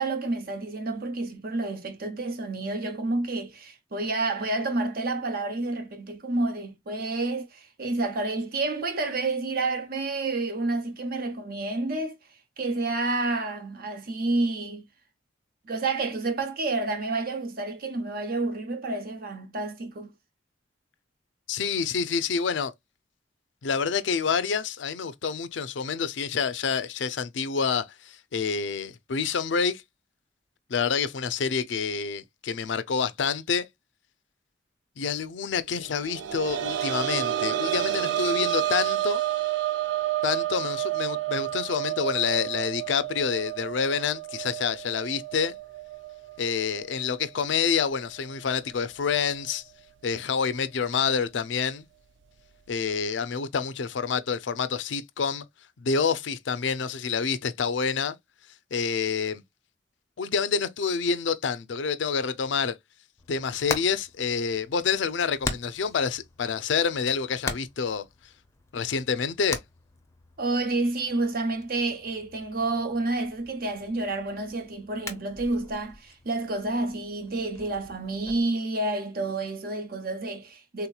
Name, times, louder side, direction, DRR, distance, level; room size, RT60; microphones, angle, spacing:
voice 1, 0.0-12.2 12.6-14.9 15.7-20.1 70.4-80.9, right 2 dB, 55° right, 0.8 m, -29 dB
voice 2, 21.5-22.7 23.6-29.8 30.7-33.7 35.0-39.2 40.2-45.6 46.4-49.6 50.0-51.8 52.7-55.5 55.8-58.1 58.7-59.4 60.2-62.8 63.3-68.0 68.7-69.6, left 6 dB, 85° left, 0.5 m, -27 dB
sound 1, 35.9-47.3 47.7-47.8 49.3-49.4, right 13 dB, 80° right, 0.4 m, -30 dB
Hammer, 63.2-78.4, left 3 dB, 15° left, 0.6 m, -41 dB
3.5 x 2.9 x 2.2 m
head